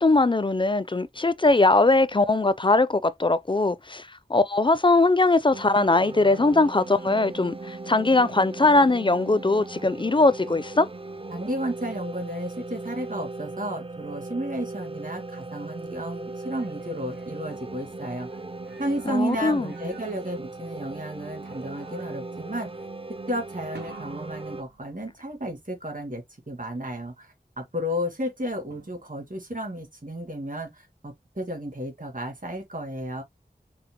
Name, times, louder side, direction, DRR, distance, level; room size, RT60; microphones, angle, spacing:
voice 1, 0.0-10.9 19.1-19.7, left 2 dB, 30° left, 0.4 m, -21 dB
sound 1, 5.5-24.6, right 2 dB, 35° right, 0.5 m, -38 dB
voice 2, 11.3-18.4 18.8-22.7 23.3-33.2, equal, 50° right, 1.8 m, -32 dB
sound 2, 16.2-18.1 18.6-21.0 21.5-22.4 23.8-25.4 28.7-29.4, right 3 dB, 75° right, 1.2 m, -50 dB
5.7 x 2.0 x 3.6 m
wide cardioid pair, 45°, 17 cm